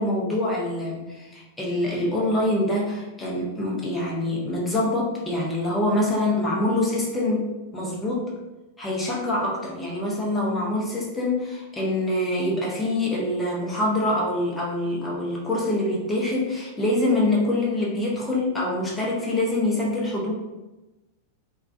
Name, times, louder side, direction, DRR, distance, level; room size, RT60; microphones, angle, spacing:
voice 1, 0.0-8.3 8.8-20.3, left 1 dB, 10° left, -5 dB, 0.6 m, -25 dB
2.2 x 2.2 x 2.6 m, 1.1 s
figure-of-eight pair, 90°, 0 cm